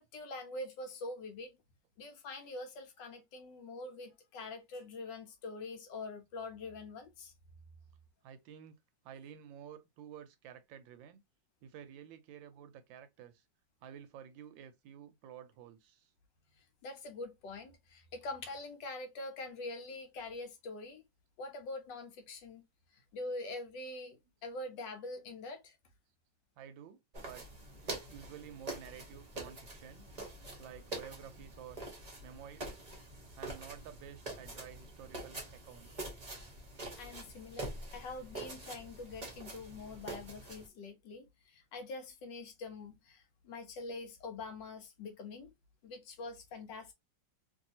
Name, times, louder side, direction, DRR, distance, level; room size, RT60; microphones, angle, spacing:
voice 1, 0.0-1.6 2.0-7.3 16.8-21.0 21.4-22.6 23.1-25.7 37.0-45.5 45.8-46.9, left 2 dB, 70° left, 1.3 m, -44 dB
voice 2, 8.2-8.8 9.0-11.2 11.6-13.4 13.8-16.1 22.9-23.0 26.6-27.5 27.9-30.1 30.6-31.8 32.2-32.8 33.4-36.1 43.6-43.7, right 9 dB, 75° right, 1.2 m, -51 dB
sound 1, 27.1-40.7, right 2 dB, 30° right, 0.7 m, -45 dB
3.0 x 2.7 x 2.7 m
omnidirectional pair, 2.2 m